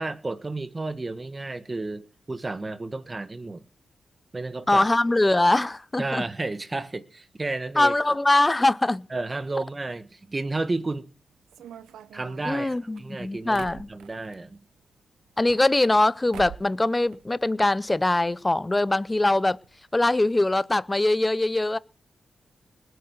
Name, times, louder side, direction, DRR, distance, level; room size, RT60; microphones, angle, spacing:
voice 1, 0.0-3.6 4.3-4.9 6.0-7.9 9.1-11.0 12.1-14.6, right 2 dB, 30° right, 1.5 m, -32 dB
voice 2, 4.7-6.2 7.8-9.1 12.4-13.9 15.4-19.6 19.9-21.8, left 2 dB, 20° left, 0.7 m, -22 dB
sound 1, 11.5-14.4 15.3-16.1 16.3-16.8 17.1-17.9 18.1-18.2 18.4-18.5 19.2-19.3 19.6-19.8, right 9 dB, 85° right, 0.6 m, -45 dB
20.0 x 8.1 x 6.5 m
cardioid pair, 55°, 0 cm